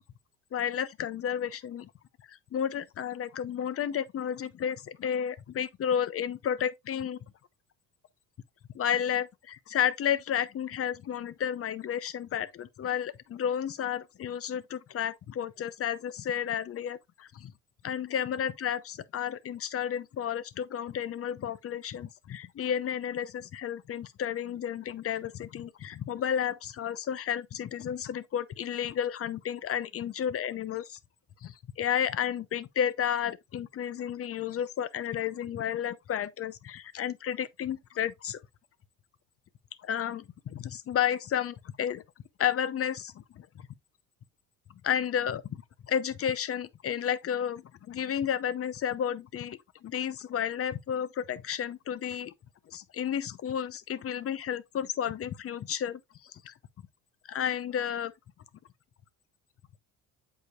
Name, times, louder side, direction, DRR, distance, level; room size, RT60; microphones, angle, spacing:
voice 1, 0.5-1.9 2.3-7.2 8.7-17.5 17.8-31.0 31.4-38.4 39.8-42.0 42.4-43.7 44.8-45.6 45.9-52.3 52.7-56.5 57.3-58.1, left 9 dB, 40° left, 0.7 m, -32 dB
8.0 x 4.9 x 2.4 m
supercardioid pair, 95°, 37 cm